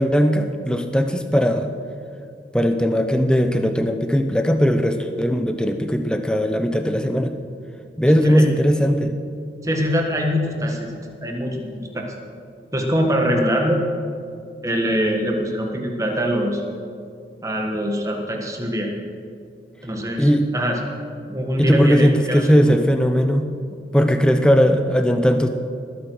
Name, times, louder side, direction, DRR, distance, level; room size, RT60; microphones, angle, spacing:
voice 1, 0.0-1.7 2.5-7.3 8.0-9.1 20.2-20.5 21.6-23.5 23.9-25.5, equal, 5° left, 7 dB, 0.7 m, -18 dB
voice 2, 9.6-10.9 11.2-12.1 12.7-13.8 14.6-16.6 17.4-18.9 19.8-20.8 21.3-22.8, equal, 20° right, 2 dB, 1.5 m, -23 dB
20.0 x 8.0 x 6.3 m, 2.4 s
head